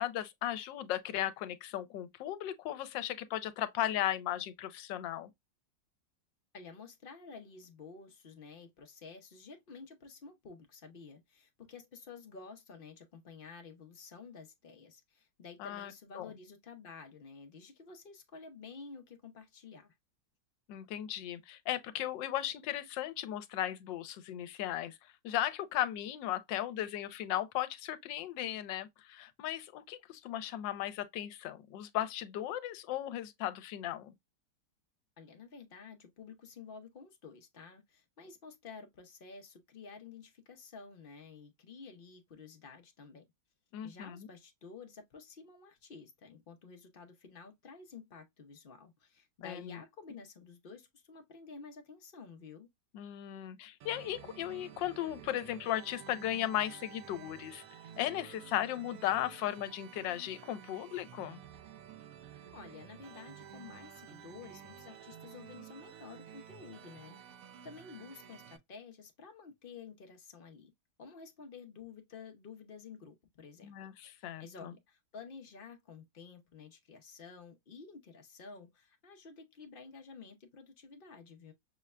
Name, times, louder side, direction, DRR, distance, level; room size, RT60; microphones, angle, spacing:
voice 1, 0.0-5.3 15.6-16.3 20.7-25.0 25.2-34.1 43.7-44.3 49.4-49.8 52.9-57.6 58.0-61.4 73.6-74.7, left 12 dB, 90° left, 1.3 m, -36 dB
voice 2, 6.5-19.9 35.2-43.2 43.8-52.7 62.5-70.7 71.0-73.7 74.0-81.5, left 5 dB, 60° left, 0.5 m, -51 dB
sound 1, 53.8-68.6, right 9 dB, 65° right, 0.8 m, -52 dB
6.1 x 2.1 x 2.3 m
omnidirectional pair, 1.9 m